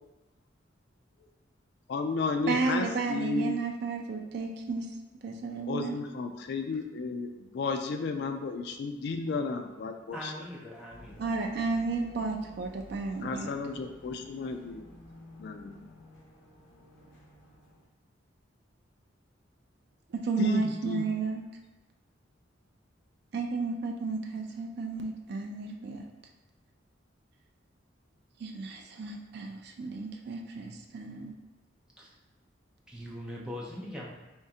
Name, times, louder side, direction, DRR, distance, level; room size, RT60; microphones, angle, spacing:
voice 1, 1.9-3.6 5.7-10.3 13.2-14.9 15.4-15.9 20.4-21.0, left 4 dB, 55° left, 5 dB, 0.3 m, -33 dB
voice 2, 2.5-4.9 5.2-6.0 11.2-13.5 20.3-21.4 23.3-26.0 28.4-31.4, right 4 dB, 55° right, 2 dB, 0.3 m, -32 dB
voice 3, 10.1-11.7 32.0-32.1 32.9-34.1, left 1 dB, 5° right, -4 dB, 0.5 m, -41 dB
sound 1, 10.9-17.9, left 1 dB, 80° left, 0.8 m, -53 dB
3.6 x 3.2 x 2.8 m, 1.1 s
head